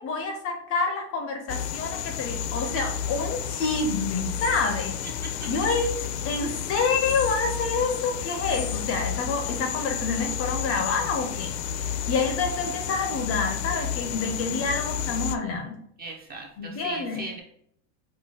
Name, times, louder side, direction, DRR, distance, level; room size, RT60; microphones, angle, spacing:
voice 1, 0.0-4.9 5.5-5.9 6.2-11.6 12.1-15.8 16.6-17.3, left 4 dB, 30° left, 4 dB, 0.5 m, -28 dB
sound 1, 1.5-15.4, left 8 dB, 75° left, 0.6 m, -31 dB
voice 2, 16.0-17.4, right 2 dB, 20° right, 1 dB, 0.5 m, -38 dB
4.7 x 2.3 x 4.1 m, 0.70 s
supercardioid pair, 140°, 48 cm